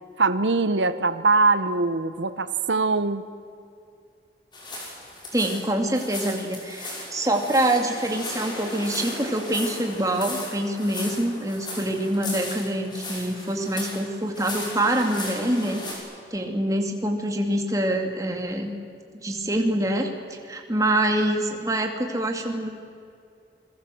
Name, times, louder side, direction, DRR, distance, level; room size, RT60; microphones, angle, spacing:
voice 1, 0.2-3.2, right 3 dB, 90° right, 13 dB, 1.0 m, -22 dB
sound 1, 4.5-15.9, left 2 dB, 25° left, 6.0 m, -36 dB
voice 2, 5.3-15.9 16.3-18.7 19.2-22.7, right 1 dB, 20° right, 3 dB, 2.6 m, -25 dB
28.0 x 21.5 x 7.8 m, 2.4 s
head